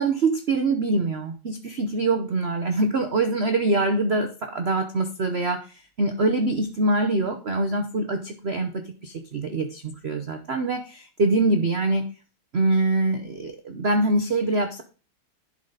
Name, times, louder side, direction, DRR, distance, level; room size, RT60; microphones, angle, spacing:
voice 1, 0.0-12.1 12.5-14.8, right 2 dB, 75° right, 6 dB, 0.5 m, -24 dB
11.0 x 4.9 x 3.9 m, 0.35 s
omnidirectional pair, 2.4 m